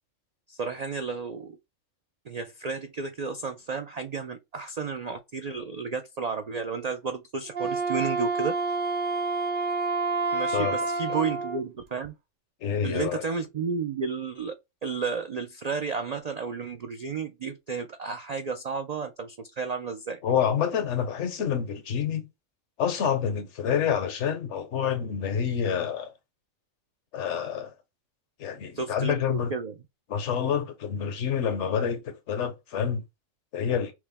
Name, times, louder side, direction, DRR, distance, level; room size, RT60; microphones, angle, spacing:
voice 1, 0.5-1.6 2.3-8.5 10.3-12.1 12.8-14.5 14.8-20.2 28.7-29.7, right 5 dB, 75° right, 0.3 m, -32 dB
Wind instrument woodwind instrument, 7.5-11.6, right 3 dB, 45° right, 0.9 m, -28 dB
voice 2, 12.6-13.2 20.2-22.3 22.8-26.1 27.1-27.7 28.4-29.5 30.1-33.0 33.5-33.9, left 8 dB, 65° left, 1.0 m, -28 dB
5.9 x 2.1 x 3.4 m
omnidirectional pair, 1.3 m